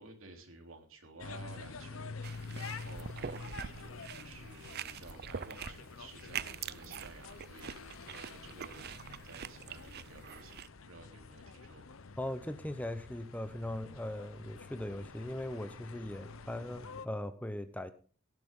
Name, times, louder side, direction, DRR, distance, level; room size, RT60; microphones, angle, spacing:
voice 1, 0.0-10.6 10.9-11.9, right 3 dB, 70° right, 3.4 m, -53 dB
sound 1, 1.2-17.1, left 4 dB, 70° left, 0.8 m, -48 dB
sound 2, 2.2-10.7, right 7 dB, 50° right, 0.5 m, -45 dB
voice 2, 12.2-17.9, left 1 dB, 5° left, 0.8 m, -39 dB
17.5 x 11.0 x 3.7 m
head